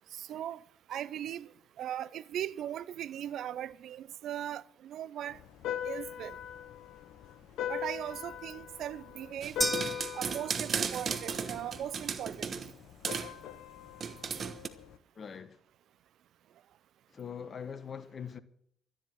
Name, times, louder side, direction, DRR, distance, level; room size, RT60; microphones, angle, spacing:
voice 1, 0.1-0.6 0.9-1.5 1.8-5.4 5.8-6.4 7.7-9.6 10.1-12.5, right 11 dB, 65° right, 0.6 m, -39 dB
sound 1, 5.3-15.0, left 10 dB, 70° left, 0.9 m, -41 dB
sound 2, 9.4-12.7 13.0-13.3 14.0-14.7, right 6 dB, 50° right, 1.2 m, -35 dB
sound 3, 9.6-11.1, right 2 dB, 20° right, 0.8 m, -35 dB
voice 2, 15.1-15.6 17.1-18.4, left 7 dB, 45° left, 1.4 m, -42 dB
13.0 x 10.5 x 8.1 m
hypercardioid pair, 50°, 0 cm